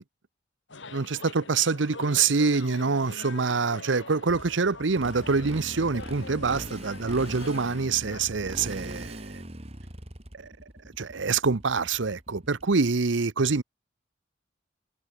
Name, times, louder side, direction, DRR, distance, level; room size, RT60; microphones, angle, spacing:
sound 1, 0.7-8.3, left 3 dB, 80° left, 6.0 m, -44 dB
voice 1, 0.9-9.4 10.3-10.5 11.0-13.6, right 4 dB, 80° right, 0.8 m, -26 dB
Motorcycle, 4.3-12.9, right 1 dB, 30° right, 3.8 m, -41 dB
head